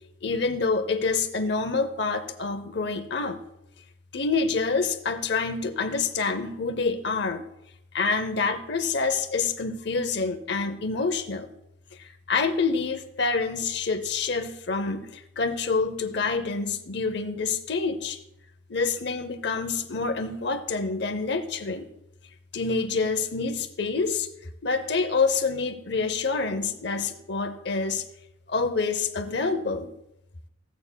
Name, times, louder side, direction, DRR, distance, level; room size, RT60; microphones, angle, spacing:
voice 1, 0.2-3.4 4.1-7.5 7.9-11.5 12.0-18.2 18.7-21.9 22.5-24.3 24.6-28.0 28.5-29.9, left 4 dB, 55° left, 9 dB, 0.7 m, -27 dB
15.0 x 8.4 x 2.2 m, 0.83 s
head